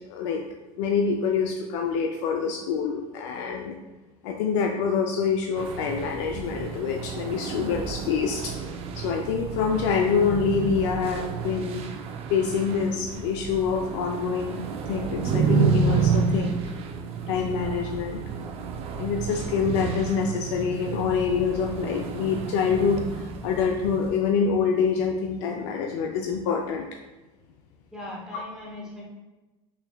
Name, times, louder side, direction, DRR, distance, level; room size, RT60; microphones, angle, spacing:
voice 1, 0.1-0.4 0.8-3.8 4.2-8.5 8.9-11.8 12.3-16.6 17.3-18.2 19.0-26.9 28.3-28.4, left 6 dB, 85° left, 2 dB, 0.4 m, -26 dB
sound 1, 5.6-24.1, right 5 dB, 40° right, 0.4 m, -30 dB
voice 2, 27.9-29.0, left 1 dB, 5° right, -5 dB, 0.9 m, -39 dB
4.5 x 3.3 x 2.2 m, 1.1 s
supercardioid pair, 130°, 15 cm